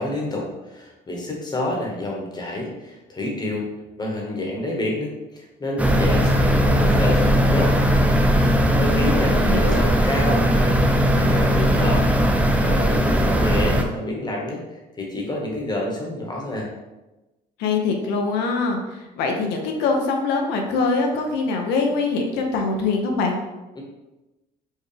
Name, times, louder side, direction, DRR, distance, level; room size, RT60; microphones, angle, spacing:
voice 1, 0.0-3.7 4.0-7.7 8.4-9.4 9.7-12.1 12.6-16.7 23.8-23.9, left 1 dB, 25° left, -1 dB, 1.0 m, -28 dB
sound 1, 5.8-13.8, equal, 10° right, 0.4 m, -18 dB
voice 2, 9.3-9.8 17.6-23.4, left 4 dB, 85° left, 2 dB, 0.6 m, -23 dB
4.5 x 2.3 x 3.2 m, 1.0 s
cardioid pair, 110°, 17 cm